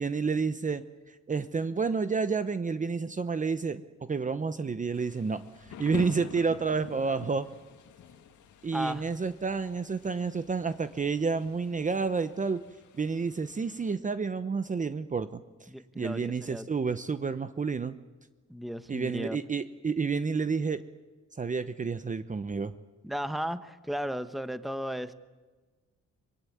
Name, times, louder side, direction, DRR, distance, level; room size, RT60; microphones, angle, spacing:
voice 1, 0.0-3.8 4.1-7.5 8.6-12.6 13.0-15.7 16.0-18.0 18.9-20.8 21.4-22.7, right 5 dB, 25° right, 11 dB, 0.9 m, -30 dB
Thunder / Rain, 4.9-13.9, left 8 dB, 80° left, 2.1 m, -47 dB
voice 2, 8.7-9.0 15.7-16.6 18.5-19.4 23.0-25.1, equal, ahead, 11 dB, 1.1 m, -35 dB
24.5 x 22.5 x 9.4 m, 1.3 s
cardioid pair, 120°, 29 cm